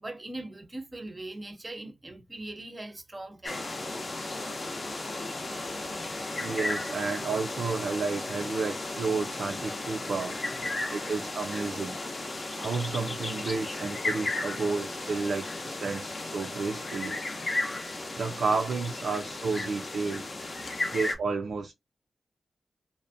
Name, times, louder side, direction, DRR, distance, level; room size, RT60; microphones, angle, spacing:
voice 1, 0.0-4.0 5.5-6.2 9.9-10.1 20.7-20.8, right 2 dB, 20° right, 0.6 m, -42 dB
sound 1, 3.4-21.1, left 2 dB, 40° left, 0.6 m, -35 dB
voice 2, 5.9-10.4 10.9-12.0 12.6-17.2 18.1-20.3 20.9-21.7, right 4 dB, 80° right, 0.4 m, -31 dB
2.5 x 2.1 x 2.5 m
wide cardioid pair, 120°, 0 cm